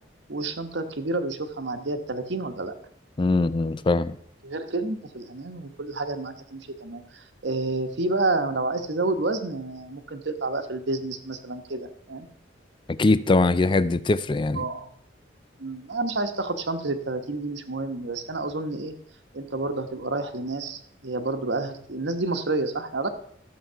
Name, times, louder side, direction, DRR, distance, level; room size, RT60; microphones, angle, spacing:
voice 1, 0.3-2.7 4.4-12.3 14.5-14.9 15.6-18.9 19.3-23.1, right 2 dB, 70° right, 1.2 m, -29 dB
voice 2, 3.2-4.2 12.9-14.6, left 3 dB, 25° left, 0.4 m, -22 dB
13.5 x 7.3 x 5.7 m
head